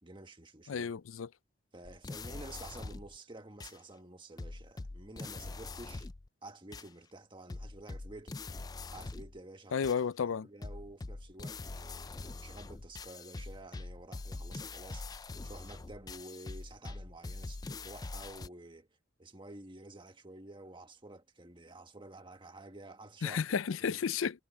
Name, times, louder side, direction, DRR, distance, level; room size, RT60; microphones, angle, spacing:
voice 1, 0.0-0.9 1.7-6.1 6.4-8.4 8.9-9.9 10.2-18.9 19.2-23.4 23.8-24.0, right 2 dB, 25° right, 1.6 m, -51 dB
voice 2, 0.7-1.3 9.7-10.5 23.2-24.3, left 6 dB, 90° left, 0.5 m, -32 dB
sound 1, 1.9-3.2 3.6-3.8 4.4-6.3 6.7-6.9 7.5-9.4 9.8-10.0 10.6-18.5, left 3 dB, 20° left, 0.4 m, -43 dB
head